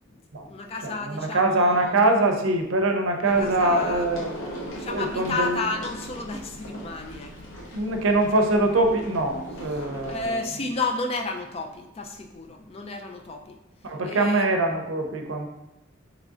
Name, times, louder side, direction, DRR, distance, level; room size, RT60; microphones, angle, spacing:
voice 1, 0.1-1.9 3.4-4.0 4.6-7.8 10.0-13.6 13.8-14.5, left 3 dB, 30° left, 4 dB, 0.4 m, -32 dB
voice 2, 0.8-4.3 4.8-5.6 7.7-10.5 13.8-15.5, right 2 dB, 75° right, 4 dB, 0.6 m, -23 dB
sound 1, 3.2-10.3, equal, 90° left, 1.0 m, -38 dB
3.6 x 3.2 x 3.8 m, 0.91 s
head